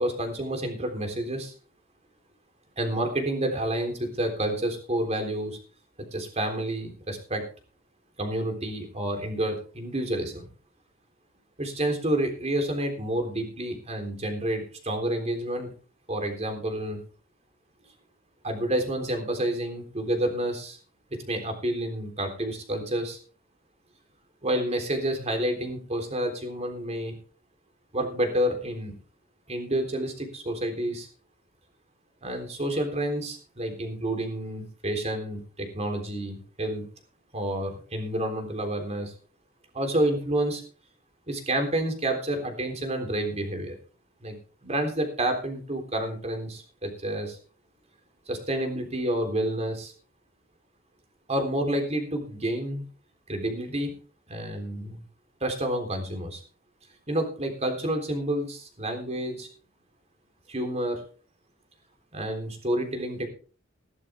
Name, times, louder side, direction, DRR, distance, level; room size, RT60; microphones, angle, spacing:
voice 1, 0.0-1.5 2.8-5.6 6.1-7.5 8.2-10.5 11.6-15.7 16.1-17.0 18.4-20.8 21.1-23.2 24.4-27.2 27.9-28.9 29.5-31.1 32.2-36.9 37.3-39.1 39.7-40.6 41.3-43.8 44.2-44.4 44.6-47.4 48.3-49.9 51.3-52.9 53.3-53.9 54.3-55.0 55.4-56.4 57.1-59.5 60.5-61.0 62.1-63.3, right 1 dB, 35° right, 4 dB, 3.6 m, -29 dB
16.0 x 12.0 x 3.6 m, 0.38 s
head